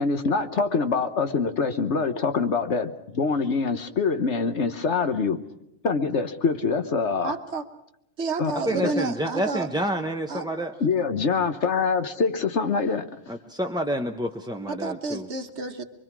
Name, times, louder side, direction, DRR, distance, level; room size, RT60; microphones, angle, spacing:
voice 1, 0.0-5.4 5.8-7.3 8.4-8.9 10.8-13.1, left 4 dB, 55° left, 8 dB, 1.4 m, -25 dB
voice 2, 7.2-7.6 8.2-9.7 10.3-10.4 14.7-15.8, right 3 dB, 55° right, 7 dB, 1.5 m, -30 dB
voice 3, 8.5-10.8 13.3-15.3, equal, 5° right, 2 dB, 0.6 m, -29 dB
24.5 x 23.5 x 6.1 m, 0.80 s
omnidirectional pair, 1.4 m